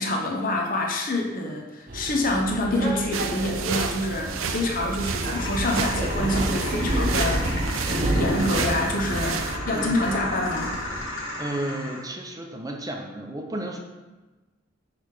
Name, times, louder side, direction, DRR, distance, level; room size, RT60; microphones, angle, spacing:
voice 1, 0.0-7.5 7.9-10.7, left 1 dB, 45° left, 1 dB, 0.8 m, -27 dB
sound 1, 1.9-11.0, right 1 dB, 45° right, 0.9 m, -29 dB
sound 2, 3.1-9.6, right 7 dB, 90° right, 0.4 m, -32 dB
sound 3, 5.1-12.1, left 1 dB, 80° left, 2.0 m, -34 dB
voice 2, 9.7-10.0 11.1-13.8, right 1 dB, 20° right, 2 dB, 0.7 m, -33 dB
6.3 x 3.4 x 4.8 m, 1.2 s
head